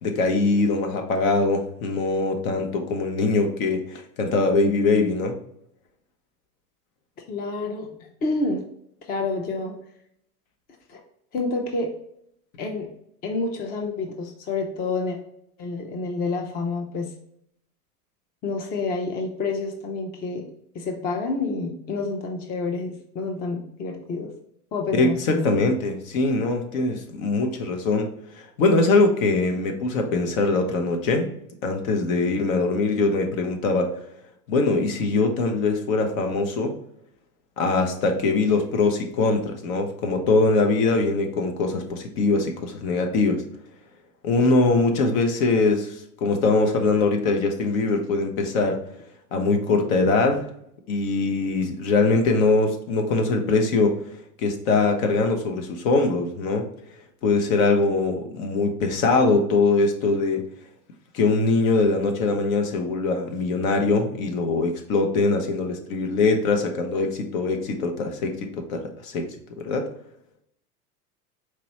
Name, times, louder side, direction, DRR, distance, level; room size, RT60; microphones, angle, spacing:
voice 1, 0.0-5.4 24.9-31.3 31.6-34.0 34.5-36.8 37.6-43.4 44.2-48.8 49.3-50.4 50.9-53.9 54.4-56.7 57.2-60.4 61.1-69.9, left 3 dB, 60° left, 4 dB, 1.0 m, -22 dB
voice 2, 7.3-7.9 8.2-8.6 9.1-9.7 10.9-11.0 11.3-11.9 12.6-12.9 13.2-15.2 15.6-17.1 18.4-20.5 20.7-24.3 24.7-25.6, left 3 dB, 20° left, 2 dB, 0.5 m, -28 dB
4.6 x 2.9 x 2.9 m, 0.73 s
hypercardioid pair, 95°, 46 cm